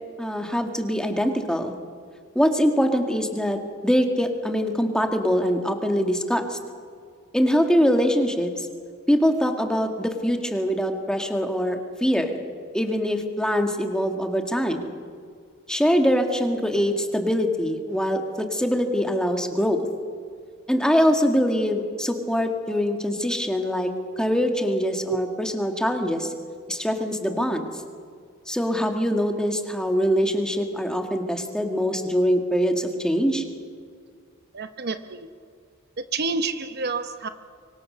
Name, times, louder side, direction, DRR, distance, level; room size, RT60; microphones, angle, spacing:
voice 1, 0.2-1.8 2.4-6.6 7.3-8.7 9.1-12.4 12.7-14.9 15.7-19.9 20.7-23.9 24.2-26.3 26.7-27.7 28.5-33.4, equal, 5° left, 4 dB, 2.0 m, -23 dB
voice 2, 34.5-35.3 36.1-37.3, right 4 dB, 55° right, 9 dB, 1.0 m, -28 dB
25.0 x 23.5 x 6.8 m, 2.1 s
head